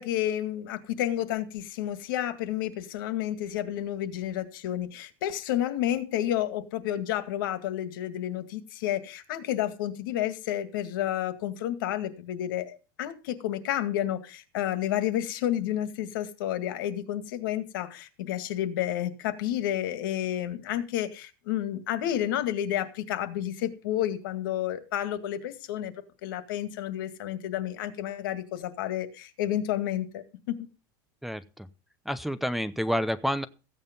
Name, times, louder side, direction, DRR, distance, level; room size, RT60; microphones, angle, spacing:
voice 1, 0.0-25.9 26.2-30.7, left 12 dB, 80° left, 11 dB, 2.1 m, -30 dB
voice 2, 31.2-31.7 32.1-33.5, equal, ahead, 10 dB, 0.6 m, -29 dB
15.0 x 9.0 x 5.3 m, 0.32 s
supercardioid pair, 165°, 11 cm